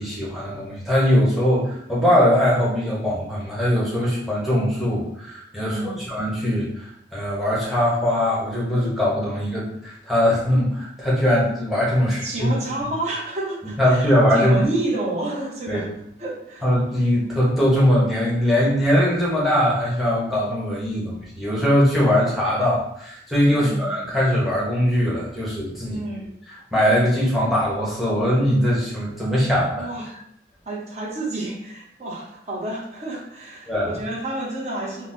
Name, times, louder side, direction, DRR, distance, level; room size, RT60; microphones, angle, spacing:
voice 1, 0.0-12.5 13.8-14.6 15.7-15.8 16.6-26.0 26.7-29.9 33.7-33.9, equal, ahead, -7 dB, 0.8 m, -21 dB
voice 2, 5.6-6.0 12.0-16.7 23.5-23.9 25.8-26.3 29.7-30.2 30.7-35.1, right 2 dB, 40° right, -2 dB, 0.6 m, -30 dB
3.8 x 2.0 x 2.5 m, 0.72 s
head